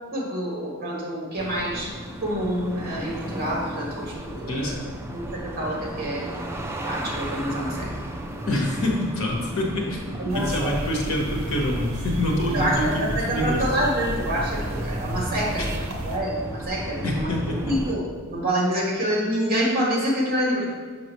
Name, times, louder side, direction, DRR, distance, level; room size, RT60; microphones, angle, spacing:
voice 1, 0.0-1.9 2.2-4.7 5.1-6.2 6.9-7.9 10.2-10.7 12.5-15.7 16.0-17.3 17.6-18.0 18.3-20.7, equal, 40° right, -3 dB, 1.6 m, -27 dB
sound 1, 1.4-17.9, right 1 dB, 10° right, 0.3 m, -34 dB
voice 2, 4.5-4.9 8.5-13.6 15.5-15.7 17.0-17.7, left 1 dB, 65° left, -1 dB, 1.2 m, -26 dB
sound 2, 10.3-16.2, right 1 dB, 60° right, 0.8 m, -32 dB
6.3 x 5.9 x 3.1 m, 1.5 s
head